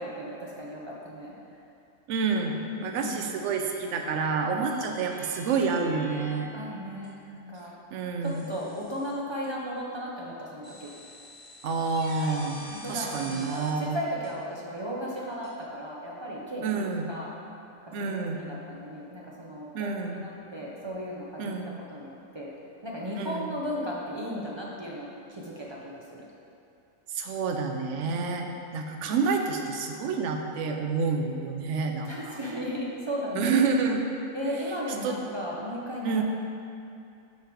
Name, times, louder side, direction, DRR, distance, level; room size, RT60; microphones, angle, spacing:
voice 1, 0.0-1.3 2.6-3.3 4.5-4.7 6.5-7.7 8.5-10.9 12.5-17.3 17.8-18.1 18.4-21.6 21.9-22.5 22.8-26.2 32.0-33.6 34.3-36.2, equal, 45° right, -4 dB, 0.3 m, -36 dB
voice 2, 2.1-6.5 7.9-8.4 11.6-12.6 12.9-14.0 16.6-17.1 17.9-18.5 19.7-20.2 21.4-21.7 23.2-23.5 27.1-32.4 33.3-34.0 35.0-35.2 36.0-36.2, right 4 dB, 70° right, 3 dB, 0.9 m, -28 dB
sound 1, 3.4-3.8 4.6-6.3 7.0-7.1 8.2-9.1 9.4-9.5 10.6-13.7 14.2-14.3 15.4-15.5, equal, 25° left, 1.7 m, -46 dB
5.6 x 5.0 x 4.4 m, 2.6 s
omnidirectional pair, 1.4 m